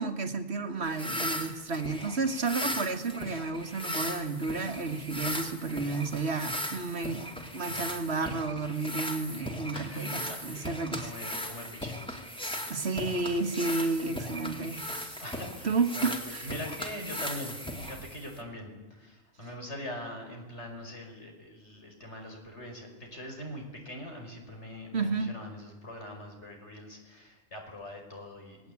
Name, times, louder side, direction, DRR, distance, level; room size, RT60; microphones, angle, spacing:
voice 1, 0.0-11.1 12.7-15.2 15.6-16.5 24.9-25.3, right 3 dB, 50° right, 8 dB, 2.0 m, -32 dB
sound 1, 0.8-18.4, equal, 5° left, 2.7 m, -38 dB
voice 2, 7.6-7.9 9.7-12.3 15.2-28.7, equal, 50° left, 2 dB, 5.6 m, -43 dB
26.5 x 20.0 x 8.5 m, 1.2 s
omnidirectional pair, 1.4 m